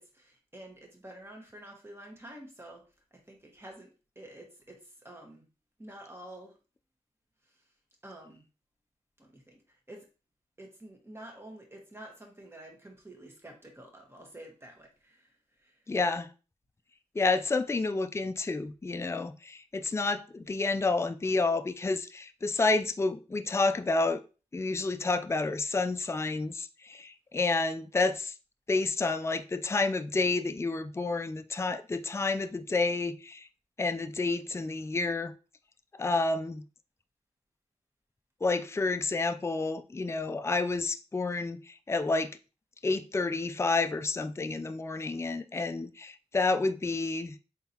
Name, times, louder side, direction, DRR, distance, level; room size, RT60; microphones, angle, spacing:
voice 1, 0.0-2.8 3.1-3.9 4.1-5.4 5.8-6.6 7.5-7.6 8.0-8.4 9.2-9.6 9.9-10.1 10.6-15.8, right 1 dB, 20° right, 1.4 m, -49 dB
voice 2, 15.9-16.3 17.2-24.2 24.5-28.3 28.7-33.5 33.8-35.3 35.9-36.6 38.4-42.3 42.8-47.4, left 3 dB, 20° left, 0.4 m, -29 dB
4.0 x 3.8 x 2.8 m
cardioid pair, 60°, 13 cm